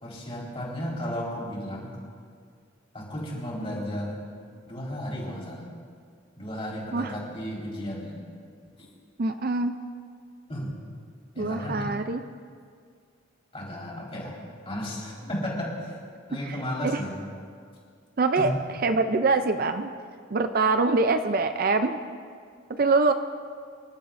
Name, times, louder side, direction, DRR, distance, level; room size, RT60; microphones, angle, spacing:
voice 1, 0.0-2.0 2.9-4.2 4.7-5.7 6.4-8.2 10.5-10.7 11.3-11.9 13.5-14.3 14.6-15.9 16.3-17.2 18.3-18.5, equal, 30° left, -5 dB, 4.3 m, -34 dB
voice 2, 9.2-9.7 11.4-12.2 16.5-16.6 16.8-17.0 18.2-18.5 18.8-19.9 20.3-22.0 22.7-23.1, right 3 dB, 45° right, 8 dB, 0.5 m, -24 dB
26.5 x 12.0 x 2.6 m, 2.1 s
head